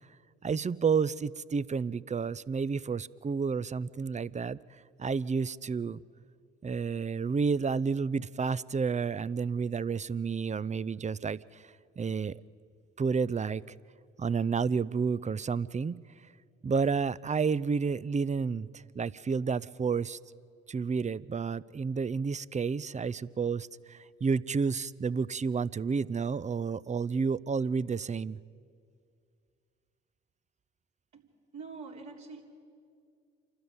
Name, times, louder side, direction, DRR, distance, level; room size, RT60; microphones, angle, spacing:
voice 1, 0.4-4.6 5.0-6.0 6.6-12.3 13.0-13.6 14.2-15.9 16.6-20.2 20.7-28.4, right 5 dB, 20° right, 20 dB, 0.5 m, -30 dB
voice 2, 31.5-32.4, right 4 dB, 65° right, -1 dB, 3.7 m, -44 dB
27.0 x 12.5 x 9.6 m, 2.2 s
hypercardioid pair, 50°, 31 cm